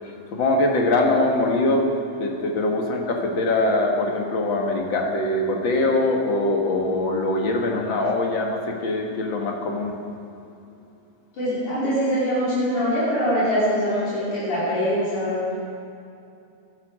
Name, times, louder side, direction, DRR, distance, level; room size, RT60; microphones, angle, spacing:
voice 1, 0.0-1.8 2.2-9.9, left 2 dB, 45° left, 1 dB, 2.0 m, -23 dB
voice 2, 11.3-15.5, equal, 70° left, -10 dB, 5.0 m, -23 dB
21.5 x 11.5 x 4.9 m, 2.6 s
omnidirectional pair, 3.6 m